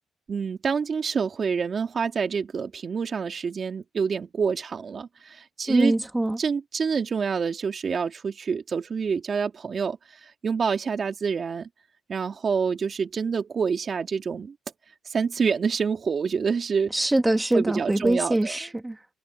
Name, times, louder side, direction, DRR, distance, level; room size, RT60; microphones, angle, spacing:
voice 1, 0.3-5.9 6.4-11.7 12.1-14.5 15.1-16.9 17.5-18.5, right 6 dB, 45° right, 2.8 m, -27 dB
voice 2, 5.7-6.4 16.9-19.0, right 1 dB, 10° right, 1.8 m, -23 dB
cardioid pair, 90°, 0 cm